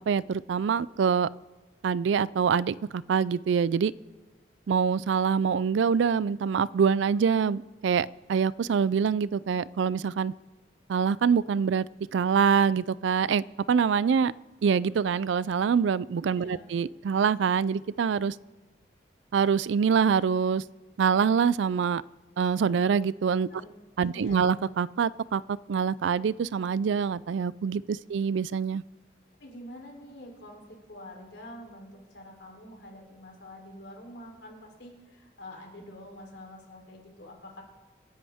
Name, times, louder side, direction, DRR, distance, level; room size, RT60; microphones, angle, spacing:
voice 1, 0.1-1.3 1.8-3.9 4.7-10.3 10.9-14.3 14.6-18.4 19.3-20.6 21.0-22.0 22.4-23.5 24.0-28.8, right 6 dB, 80° right, 21 dB, 0.4 m, -25 dB
voice 2, 16.4-16.7 23.5-23.7 24.1-24.5 29.4-37.6, left 1 dB, 75° left, 1 dB, 3.5 m, -46 dB
27.5 x 10.5 x 3.6 m, 1.3 s
head